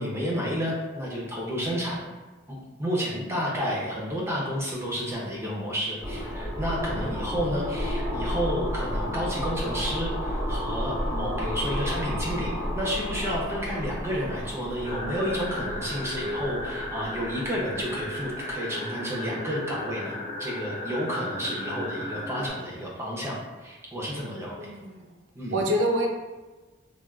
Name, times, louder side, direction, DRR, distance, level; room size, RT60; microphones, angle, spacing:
voice 1, 0.0-2.0 2.5-24.7 25.3-25.6, equal, 15° right, -4 dB, 0.6 m, -31 dB
sound 1, 6.0-18.5, equal, 10° left, 1.1 m, -32 dB
sound 2, 14.8-22.5, left 1 dB, 40° left, 0.6 m, -35 dB
voice 2, 24.6-25.1 25.5-26.1, equal, 85° right, 1 dB, 0.5 m, -26 dB
3.4 x 2.3 x 2.3 m, 1.2 s
head